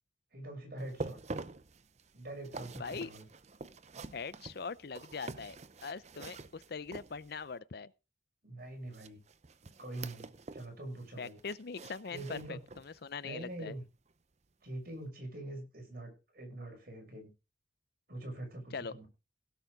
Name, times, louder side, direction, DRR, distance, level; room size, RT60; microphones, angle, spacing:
voice 1, 0.3-1.2 2.1-3.3 8.4-9.2 9.8-11.4 12.1-12.6 13.2-13.8 14.6-17.3 18.1-19.1, right 1 dB, 55° right, 6.0 m, -44 dB
sound 1, 0.8-7.5 8.9-10.7 11.0-13.0 13.4-13.6 14.1-14.2, right 3 dB, 40° right, 0.7 m, -46 dB
voice 2, 2.8-3.1 4.1-5.6 5.8-7.9 11.2-13.8 18.7-18.9, left 5 dB, 60° left, 0.6 m, -42 dB
17.0 x 7.0 x 4.9 m
head